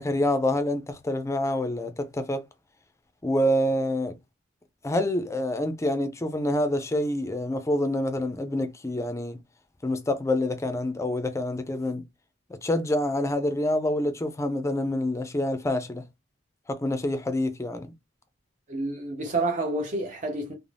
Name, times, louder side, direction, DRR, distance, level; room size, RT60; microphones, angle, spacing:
voice 1, 0.0-2.4 3.2-4.2 4.8-9.4 9.8-12.0 12.6-16.0 16.7-17.9, left 1 dB, 15° left, 0.4 m, -27 dB
voice 2, 18.7-20.5, right 2 dB, 40° right, 0.6 m, -29 dB
2.5 x 2.0 x 3.2 m
head